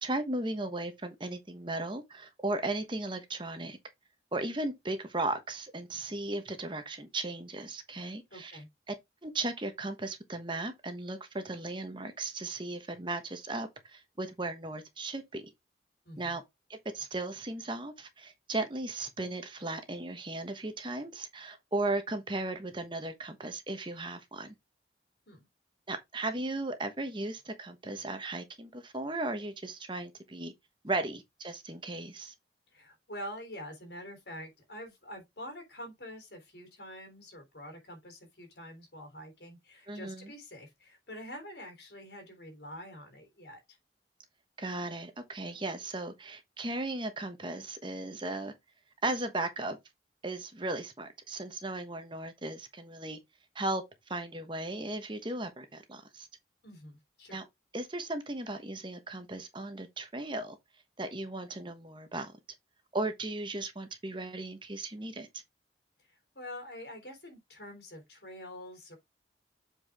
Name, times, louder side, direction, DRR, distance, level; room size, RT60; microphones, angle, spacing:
voice 1, 0.0-3.8 4.3-8.5 8.9-9.0 9.2-15.4 16.2-16.4 16.7-24.5 25.9-30.5 30.8-32.3 39.9-40.3 44.6-48.5 49.0-49.8 50.2-53.2 53.5-53.8 54.1-56.3 57.3-57.4 57.7-60.6 61.0-62.3 62.9-65.3, right 2 dB, 25° right, 1.1 m, -36 dB
voice 2, 8.3-8.7 16.1-16.4 25.3-25.5 32.7-43.8 56.6-57.4 66.0-69.0, equal, 70° left, 3.6 m, -46 dB
7.8 x 4.7 x 3.6 m
head